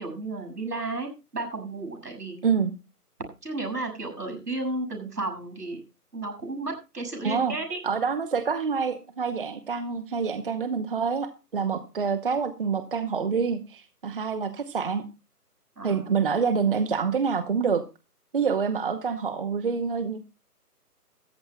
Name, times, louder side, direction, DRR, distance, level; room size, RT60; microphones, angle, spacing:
voice 1, 0.0-2.4 3.4-5.8 6.1-7.8 15.8-16.1, right 2 dB, 80° right, 5 dB, 7.0 m, -33 dB
voice 2, 7.2-7.5 7.8-15.0 15.8-17.8 18.3-20.2, right 6 dB, 35° right, 11 dB, 0.9 m, -27 dB
18.0 x 14.0 x 2.2 m, 0.29 s
figure-of-eight pair, 150°, 47 cm